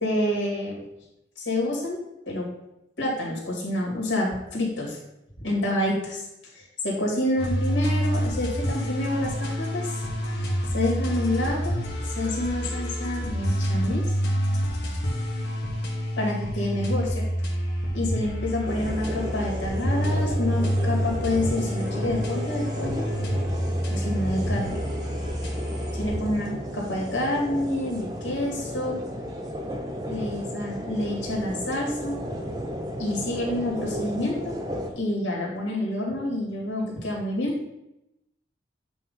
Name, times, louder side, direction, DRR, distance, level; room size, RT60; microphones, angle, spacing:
voice 1, 0.0-0.8 1.4-2.5 3.0-5.0 5.4-6.3 6.5-11.8 12.0-14.2 14.8-15.0 16.2-17.3 17.9-23.1 23.9-24.8 25.9-29.0 30.1-32.4 33.0-34.5 34.9-37.6, left 1 dB, 90° left, -2 dB, 2.4 m, -28 dB
sound 1, 7.4-26.2, equal, 60° left, 1.6 m, -28 dB
sound 2, 18.7-34.9, equal, 20° right, 0.7 m, -34 dB
8.6 x 3.0 x 5.4 m, 0.89 s
head